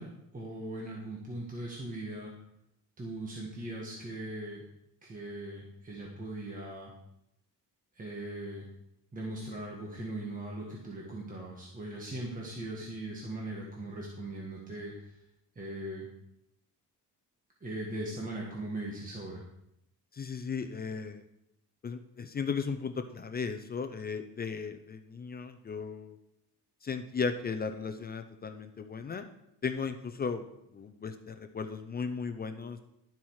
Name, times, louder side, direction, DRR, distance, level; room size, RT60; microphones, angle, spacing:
voice 1, 0.0-2.3 3.0-4.7 5.0-6.9 7.9-8.7 9.1-15.2 15.5-16.1 17.6-19.4, right 1 dB, 20° right, -2 dB, 1.6 m, -39 dB
voice 2, 20.1-21.2 21.8-26.2 26.8-29.3 29.6-30.4 30.7-32.8, left 5 dB, 25° left, 8 dB, 0.5 m, -36 dB
12.0 x 7.5 x 4.8 m, 0.80 s
cardioid pair, 165°, 38 cm